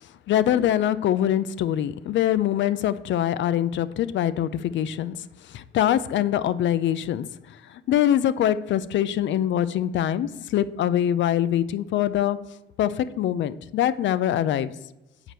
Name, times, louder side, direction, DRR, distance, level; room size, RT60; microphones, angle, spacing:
voice 1, 0.3-5.2 5.5-7.2 7.7-12.4 12.8-14.7, left 11 dB, 70° left, 16 dB, 0.5 m, -23 dB
7.5 x 4.9 x 6.6 m, 0.97 s
cardioid pair, 90°, 20 cm